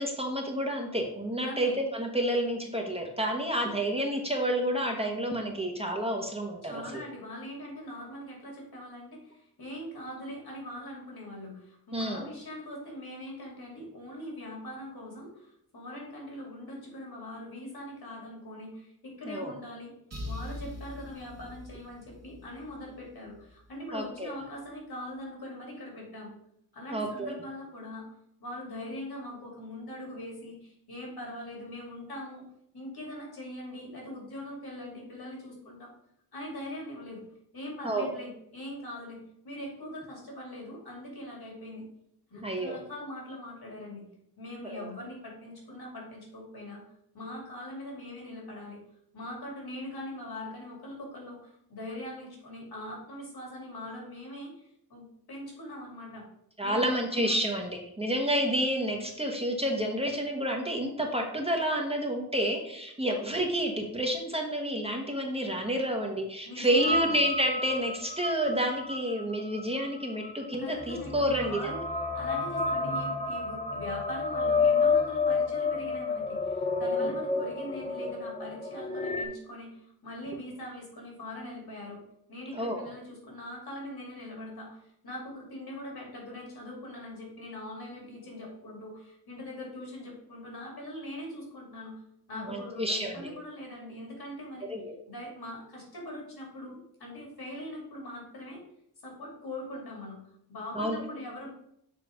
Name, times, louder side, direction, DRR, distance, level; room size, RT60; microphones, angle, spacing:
voice 1, 0.0-7.0 11.9-12.2 19.2-19.5 23.9-24.3 26.9-27.3 37.8-38.1 42.4-42.8 44.6-44.9 56.6-71.7 77.0-77.1 82.5-82.8 92.5-93.3 94.7-94.9 100.7-101.0, equal, 15° right, 1 dB, 1.0 m, -29 dB
voice 2, 1.4-1.8 6.6-19.9 20.2-26.4 26.7-28.1 28.4-32.4 32.7-35.9 36.3-37.2 37.5-39.2 39.4-41.8 42.3-44.1 44.4-46.8 47.1-48.8 49.1-56.3 56.6-57.4 66.4-67.2 70.6-71.9 72.1-82.0 82.3-91.9 92.3-94.7 95.1-98.6 99.0-100.2 100.5-101.5, left 1 dB, 70° left, -1 dB, 2.5 m, -42 dB
sound 1, 20.1-23.8, left 1 dB, 40° right, 1.2 m, -43 dB
sound 2, 66.8-79.3, left 3 dB, 20° left, 0.6 m, -30 dB
6.9 x 3.2 x 5.0 m, 0.73 s
wide cardioid pair, 105°, 38 cm